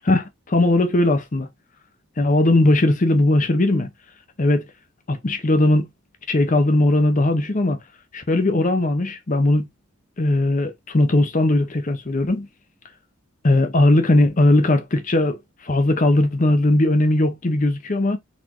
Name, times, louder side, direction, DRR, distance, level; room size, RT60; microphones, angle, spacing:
voice 1, 0.1-1.5 2.2-3.9 4.4-4.7 5.1-5.9 6.3-7.8 8.1-9.7 10.2-12.5 13.4-15.4 15.6-18.2, left 1 dB, 35° left, 0.7 m, -18 dB
4.2 x 3.6 x 2.9 m
head